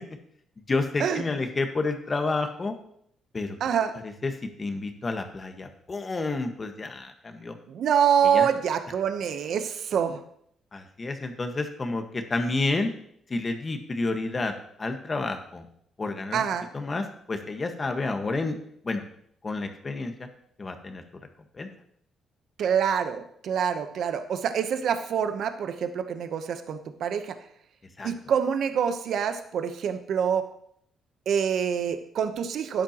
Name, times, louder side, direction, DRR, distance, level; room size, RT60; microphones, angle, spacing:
voice 1, 0.6-2.7 3.3-3.6 4.0-4.3 4.6-7.6 8.2-8.5 10.7-12.9 13.3-14.5 14.8-15.7 16.0-16.4 16.7-18.5 18.8-19.0 19.4-20.3 20.6-21.0 21.5-21.7 28.0-28.1, left 3 dB, 30° left, 5 dB, 1.5 m, -30 dB
voice 2, 3.6-3.9 7.7-10.2 16.3-16.7 22.6-27.4 28.0-30.4 31.3-32.8, right 8 dB, 70° right, 9 dB, 0.9 m, -26 dB
12.5 x 10.0 x 3.0 m, 0.68 s
cardioid pair, 90°, 0 cm